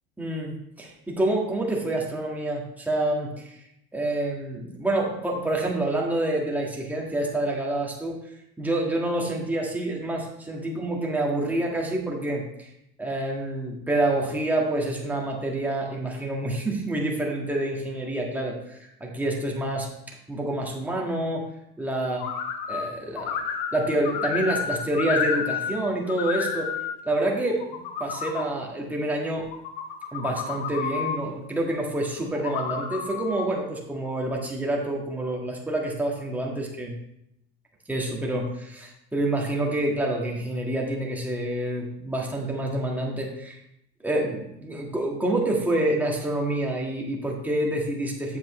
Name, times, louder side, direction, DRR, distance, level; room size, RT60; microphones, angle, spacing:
voice 1, 0.2-3.6 3.9-8.2 8.6-12.7 13.0-19.9 20.3-21.5 21.8-22.2 22.7-26.7 27.0-29.5 30.1-37.0 37.9-43.6 44.0-48.4, right 1 dB, 5° right, -2 dB, 1.7 m, -27 dB
sound 1, 22.2-22.9 23.2-25.8 26.1-26.9 27.5-28.4 29.4-31.2 32.3-33.5, left 7 dB, 75° left, 1.1 m, -30 dB
7.7 x 7.4 x 3.2 m, 0.79 s
supercardioid pair, 120°, 30 cm